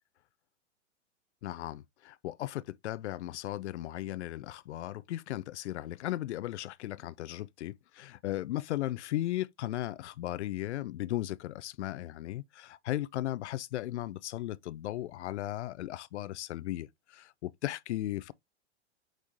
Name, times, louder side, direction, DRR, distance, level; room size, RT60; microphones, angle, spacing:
voice 1, 1.4-18.3, left 14 dB, 70° left, 0.5 m, -36 dB
5.1 x 3.3 x 2.7 m
hypercardioid pair, 110°, 35 cm